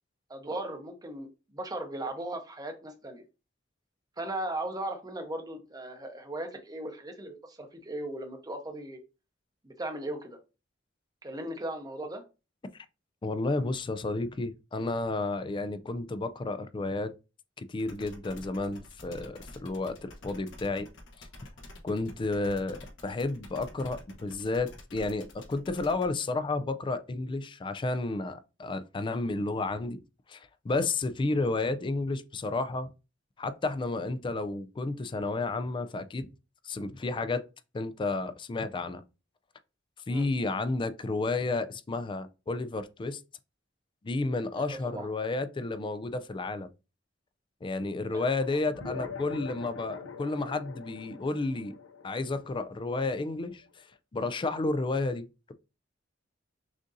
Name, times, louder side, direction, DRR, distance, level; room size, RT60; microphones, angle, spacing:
voice 1, 0.3-3.2 4.2-9.0 9.6-10.4 11.2-12.2 40.1-40.3 44.6-45.1 48.1-48.6, right 1 dB, 20° right, 0.8 m, -37 dB
voice 2, 13.2-17.1 17.6-20.9 21.2-21.3 21.8-30.0 30.3-32.9 33.4-36.3 36.6-37.4 37.7-39.0 40.1-43.2 44.0-46.7 47.6-51.8 52.0-53.6 54.1-55.5, left 3 dB, 25° left, 0.3 m, -31 dB
sound 1, 17.8-26.0, left 1 dB, 70° left, 1.1 m, -49 dB
sound 2, 48.7-53.6, left 5 dB, 85° left, 0.7 m, -43 dB
6.2 x 2.6 x 2.6 m
head